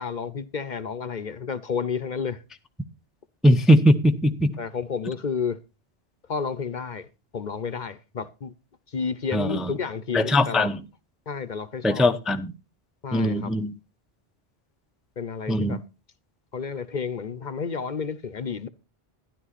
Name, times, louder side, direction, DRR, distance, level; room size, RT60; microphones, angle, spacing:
voice 1, 0.0-2.4 4.6-5.6 6.3-7.1 7.3-8.5 8.9-10.8 11.3-12.1 13.0-13.5 15.2-15.8 16.5-18.7, left 5 dB, 50° left, 0.8 m, -31 dB
voice 2, 3.4-4.5 9.3-9.6 10.1-10.8 11.8-12.5 13.1-13.7 15.5-15.8, equal, ahead, 0.6 m, -20 dB
12.5 x 11.0 x 4.1 m
omnidirectional pair, 1.1 m